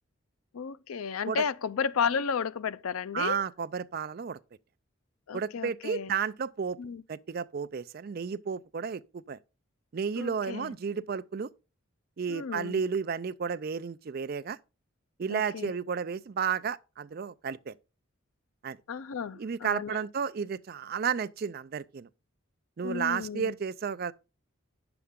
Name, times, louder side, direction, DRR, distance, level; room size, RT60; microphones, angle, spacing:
voice 1, 0.5-3.4 5.3-6.1 6.8-7.0 10.2-10.7 12.3-12.8 15.3-15.7 18.9-20.0 22.8-23.5, left 6 dB, 90° left, 0.5 m, -33 dB
voice 2, 3.1-4.4 5.3-6.8 7.1-9.4 9.9-11.5 12.2-14.6 15.2-17.7 18.6-18.8 19.3-22.1 22.8-24.1, right 6 dB, 45° right, 0.4 m, -32 dB
9.5 x 6.9 x 3.6 m
head